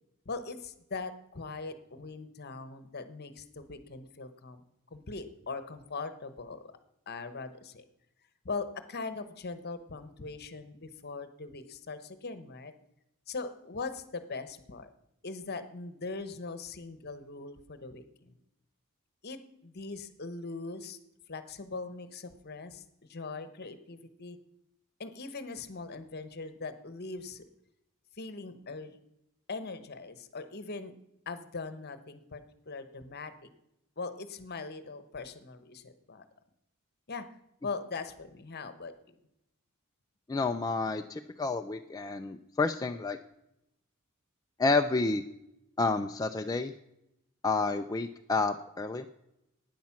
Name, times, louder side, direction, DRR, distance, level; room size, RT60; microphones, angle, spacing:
voice 1, 0.2-4.6 4.9-6.7 7.1-7.8 8.4-12.7 13.3-14.9 15.2-18.4 19.2-21.0 21.3-22.8 23.1-24.4 25.0-27.4 28.2-29.0 29.5-30.9 31.3-32.4 32.7-33.3 34.0-36.2 37.1-37.2 37.6-39.1, left 4 dB, 50° left, 11 dB, 1.0 m, -41 dB
voice 2, 40.3-43.2 44.6-45.2 45.8-46.7 47.4-49.1, left 3 dB, 15° left, 5 dB, 0.4 m, -29 dB
11.5 x 9.3 x 5.9 m, 0.84 s
head